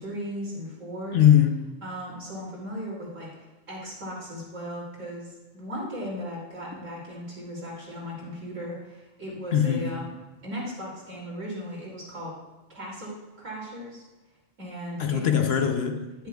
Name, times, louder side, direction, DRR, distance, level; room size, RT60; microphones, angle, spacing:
voice 1, 0.0-1.3 1.8-3.3 3.7-10.1 10.4-12.4 12.7-13.1 13.4-14.0 14.6-15.5 16.2-16.3, equal, 85° right, 3.2 m, -36 dB
voice 2, 1.1-1.8 9.5-10.0 15.0-16.1, left 9 dB, 60° left, 0.9 m, -21 dB
11.0 x 11.0 x 2.3 m
omnidirectional pair, 1.3 m